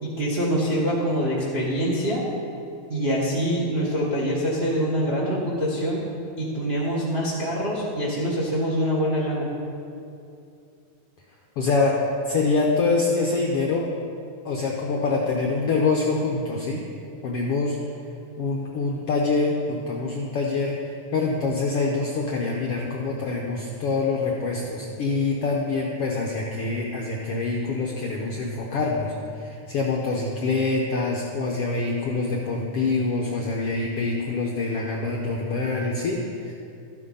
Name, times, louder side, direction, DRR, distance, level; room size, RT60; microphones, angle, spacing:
voice 1, 0.0-2.2 2.9-6.0 6.4-9.5, equal, 40° right, -4 dB, 0.8 m, -25 dB
voice 2, 11.6-12.0 12.2-13.9 14.4-16.8 17.2-17.8 18.4-36.5, left 3 dB, 75° left, -1 dB, 1.4 m, -25 dB
13.0 x 7.7 x 5.5 m, 2.6 s
omnidirectional pair, 3.7 m